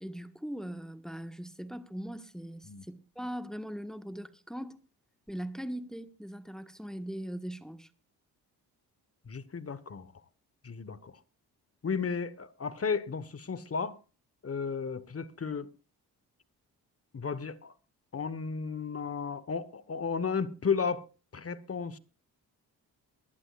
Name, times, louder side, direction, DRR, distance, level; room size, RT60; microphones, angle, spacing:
voice 1, 0.0-4.8 5.3-7.9, equal, ahead, 1.5 m, -40 dB
voice 2, 9.3-10.1 10.6-11.1 11.8-14.0 14.4-15.7 17.1-17.7 18.1-21.1 21.3-22.0, left 5 dB, 35° left, 1.3 m, -33 dB
23.0 x 11.5 x 2.5 m
supercardioid pair, 60°, 40 cm